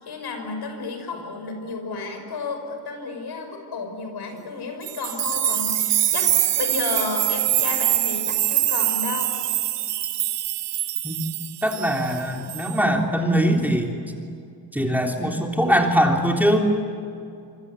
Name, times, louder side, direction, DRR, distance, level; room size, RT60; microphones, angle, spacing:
voice 1, 0.0-9.3, left 3 dB, 70° left, 5 dB, 5.8 m, -32 dB
sound 1, 4.8-12.2 12.5-12.8, right 12 dB, 85° right, 1.4 m, -24 dB
voice 2, 11.6-14.0 14.7-16.7, equal, 5° right, 1 dB, 3.6 m, -21 dB
26.0 x 25.0 x 8.4 m, 2.5 s
cardioid pair, 85°, 41 cm